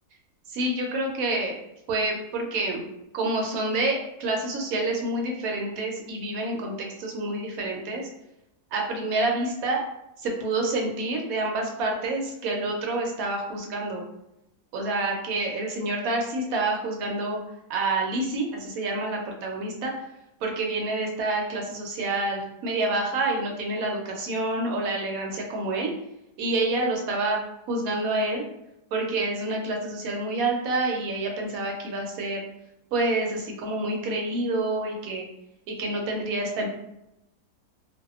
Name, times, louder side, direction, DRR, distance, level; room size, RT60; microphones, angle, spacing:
voice 1, 0.5-1.6 1.9-2.9 3.1-8.0 8.7-9.8 10.2-14.0 14.7-17.4 17.7-19.9 20.4-25.9 26.4-27.4 27.7-28.4 28.9-32.4 32.9-35.3 35.7-36.7, right 2 dB, 70° right, 0 dB, 0.9 m, -28 dB
2.7 x 2.1 x 2.3 m, 0.87 s
omnidirectional pair, 1.7 m